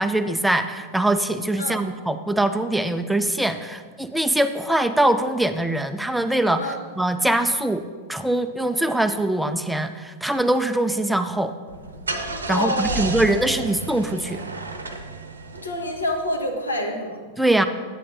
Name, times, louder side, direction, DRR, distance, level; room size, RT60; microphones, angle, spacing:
voice 1, 0.0-6.7 7.0-7.8 8.1-11.5 12.5-14.4 17.4-17.7, right 1 dB, 5° right, 9 dB, 0.3 m, -22 dB
voice 2, 1.6-1.9 6.6-6.9 12.5-13.3 13.6-13.7 15.6-17.2, left 1 dB, 75° left, 2 dB, 1.1 m, -27 dB
Car / Engine starting, 11.7-16.3, right 2 dB, 75° right, 0.7 m, -32 dB
9.1 x 8.4 x 2.5 m, 1.5 s
figure-of-eight pair, 90°, 0 cm